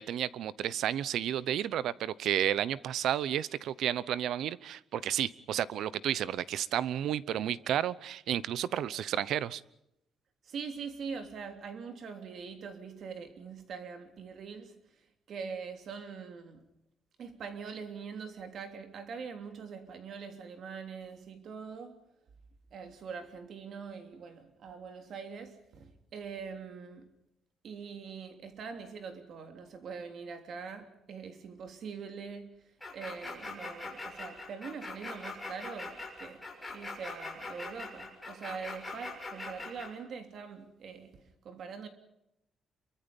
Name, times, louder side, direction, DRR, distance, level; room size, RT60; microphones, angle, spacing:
voice 1, 0.0-9.6, right 10 dB, 70° right, 0.8 m, -32 dB
voice 2, 10.4-14.8 15.3-16.7 17.2-22.0 22.7-27.1 27.6-36.4 36.7-41.9, right 5 dB, 50° right, 3.3 m, -43 dB
sound 1, 32.8-39.9, left 3 dB, 5° left, 6.5 m, -42 dB
28.0 x 24.0 x 5.4 m
cardioid pair, 165°, 0 cm